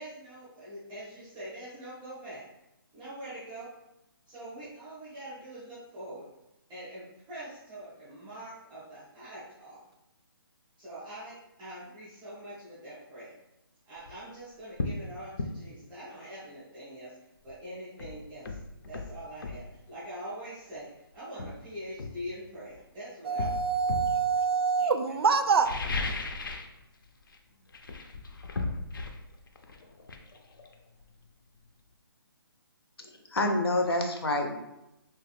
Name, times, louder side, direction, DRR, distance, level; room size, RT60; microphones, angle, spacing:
voice 1, 0.0-2.5 2.9-3.6 4.3-6.3 6.7-9.8 10.8-13.3 13.9-17.2 17.4-18.6 18.9-23.7 24.5-25.2, right 1 dB, ahead, -18 dB, 0.3 m, -44 dB
sound 1, 14.0-14.2 14.8-15.0 15.4-15.6 17.5-17.6 18.0-19.7 20.7-20.9 21.4-22.8 23.4-24.2 25.5-26.8 27.0-27.4 27.7-31.3 31.6-31.7, left 3 dB, 60° left, 0.4 m, -36 dB
voice 2, 23.3-25.7, right 5 dB, 80° right, 9 dB, 0.4 m, -25 dB
voice 3, 33.0-34.5, left 2 dB, 90° left, 3 dB, 0.7 m, -28 dB
3.2 x 2.4 x 3.2 m, 0.90 s
hypercardioid pair, 175°, 13 cm